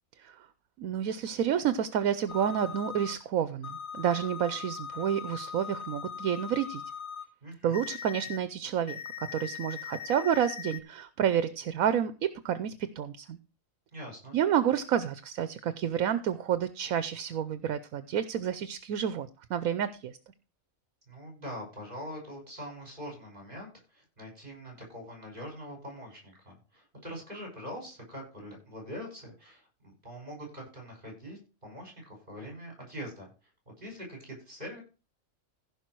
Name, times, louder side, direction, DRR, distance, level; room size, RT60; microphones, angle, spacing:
voice 1, 0.8-6.8 7.6-13.4 14.3-20.2, right 9 dB, 90° right, 13 dB, 1.2 m, -29 dB
sound 1, 2.3-3.1 3.6-7.2 7.7-8.4 8.9-10.8, left 7 dB, 85° left, 1.6 m, -40 dB
voice 2, 7.4-7.8 13.9-14.4 21.1-33.5 33.8-34.8, equal, 40° right, 0 dB, 6.2 m, -43 dB
15.5 x 5.6 x 4.6 m, 0.33 s
omnidirectional pair, 1.4 m